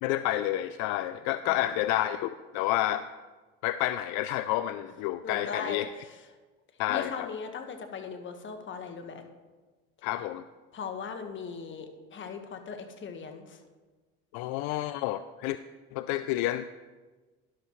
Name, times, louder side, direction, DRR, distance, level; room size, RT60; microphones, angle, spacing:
voice 1, 0.0-3.1 3.6-5.9 6.8-7.3 10.0-10.4 14.3-15.6 15.9-16.7, left 14 dB, 75° left, 12 dB, 0.4 m, -29 dB
voice 2, 5.2-6.2 6.9-9.2 10.7-13.6, left 6 dB, 40° left, 6 dB, 1.4 m, -39 dB
12.0 x 11.0 x 3.1 m, 1.3 s
supercardioid pair, 90°, 30 cm